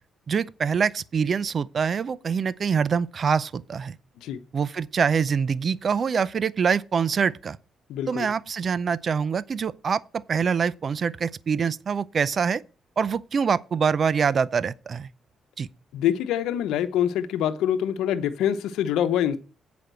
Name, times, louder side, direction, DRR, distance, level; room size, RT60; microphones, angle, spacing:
voice 1, 0.3-4.0 4.5-7.6 8.1-12.6 13.0-15.1 15.6-15.7, right 6 dB, 45° right, 0.5 m, -25 dB
voice 2, 7.9-8.3 15.9-19.4, left 10 dB, 90° left, 0.9 m, -25 dB
8.1 x 5.1 x 7.5 m
cardioid pair, 90°, 0 cm